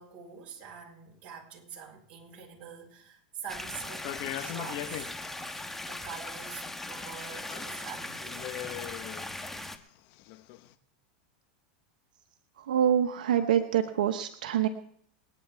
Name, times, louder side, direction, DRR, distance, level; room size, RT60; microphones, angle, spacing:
voice 1, 0.0-5.1 5.8-8.7, right 7 dB, 35° right, 4.2 m, -45 dB
sound 1, 3.5-9.8, left 2 dB, 5° left, 1.2 m, -39 dB
sound 2, 4.0-5.5 6.0-6.7 7.1-7.8 8.1-9.6 10.2-10.7, left 14 dB, 55° left, 1.1 m, -40 dB
voice 2, 12.7-14.7, right 9 dB, 85° right, 1.1 m, -25 dB
27.5 x 9.3 x 3.5 m
supercardioid pair, 125°, 4 cm